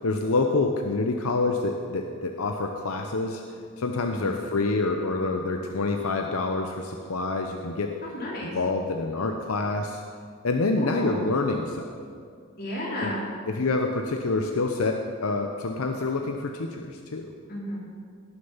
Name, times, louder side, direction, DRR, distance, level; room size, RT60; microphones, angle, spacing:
voice 1, 0.0-3.4 3.8-7.9 8.5-10.0 10.4-12.1 13.0-13.1 13.5-17.3, left 3 dB, 85° left, 4 dB, 0.7 m, -27 dB
voice 2, 8.0-8.6 10.8-11.2 12.6-13.2 17.5-17.8, left 1 dB, 45° left, -6 dB, 3.7 m, -32 dB
18.0 x 6.7 x 5.7 m, 2.2 s
head